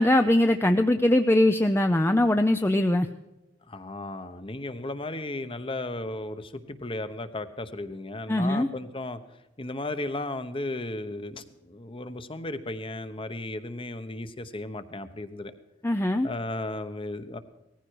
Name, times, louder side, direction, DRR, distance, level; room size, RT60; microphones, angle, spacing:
voice 1, 0.0-3.1 8.3-8.7 15.8-16.3, left 1 dB, 10° left, 7 dB, 0.5 m, -21 dB
voice 2, 3.7-9.2 9.6-15.5 16.2-17.4, left 2 dB, 30° left, 11 dB, 1.0 m, -35 dB
18.5 x 15.0 x 4.7 m, 1.0 s
head